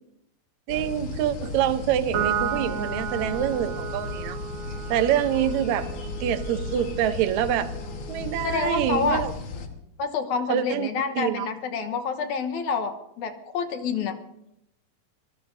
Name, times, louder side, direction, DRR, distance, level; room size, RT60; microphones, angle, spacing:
sound 1, 0.7-9.7, left 3 dB, 50° left, 1.7 m, -35 dB
voice 1, 0.7-4.4 4.9-5.9 6.2-7.7 8.1-9.3 10.5-11.5, right 11 dB, 70° right, 10 dB, 1.9 m, -26 dB
Piano, 2.1-8.8, right 7 dB, 85° right, 5.0 m, -34 dB
voice 2, 8.4-9.2 10.0-14.1, left 5 dB, 65° left, 7 dB, 2.3 m, -28 dB
25.5 x 19.5 x 2.7 m, 0.81 s
omnidirectional pair, 4.0 m